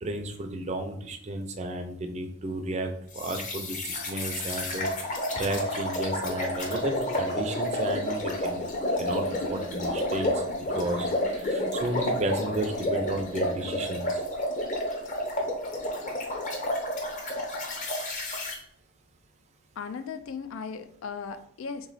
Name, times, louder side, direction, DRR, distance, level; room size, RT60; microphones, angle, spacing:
voice 1, 0.0-4.9 5.3-8.6 9.0-10.4 10.7-14.2, right 2 dB, 30° right, 5 dB, 0.5 m, -33 dB
sound 1, 3.1-18.6, left 1 dB, 35° left, 0.8 m, -30 dB
voice 2, 19.8-21.9, left 5 dB, 65° left, 10 dB, 0.4 m, -37 dB
3.5 x 3.1 x 4.0 m, 0.68 s
head